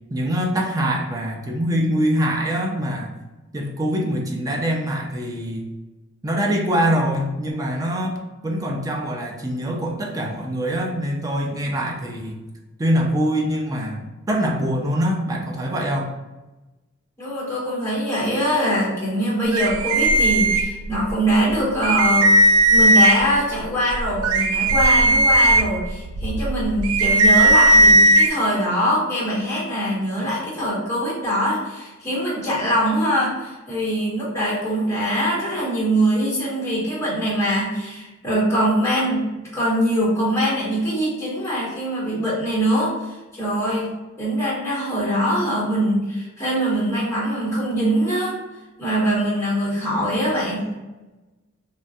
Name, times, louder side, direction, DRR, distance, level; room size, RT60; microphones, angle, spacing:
voice 1, 0.1-3.1 3.5-5.7 6.2-12.4 12.8-16.1, equal, 15° right, 0 dB, 0.4 m, -24 dB
voice 2, 17.2-22.3 22.7-43.1 43.3-48.4 48.8-50.7, equal, 15° left, -6 dB, 1.1 m, -23 dB
sound 1, 19.5-21.1 21.5-21.6 21.8-23.4 23.9-28.3, right 1 dB, 90° right, 0.3 m, -16 dB
3.1 x 2.2 x 2.6 m, 1.1 s
head